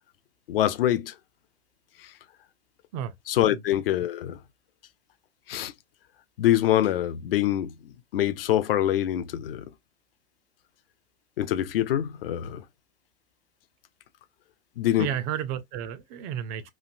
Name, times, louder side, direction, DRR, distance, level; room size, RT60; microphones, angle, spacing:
voice 1, 0.5-1.1 3.3-4.4 5.5-5.7 6.4-7.7 8.1-9.7 11.4-12.6 14.8-15.1, left 12 dB, 55° left, 0.5 m, -24 dB
voice 2, 15.0-16.7, right 10 dB, 25° right, 0.4 m, -32 dB
3.1 x 2.5 x 2.5 m
figure-of-eight pair, 105°, 34 cm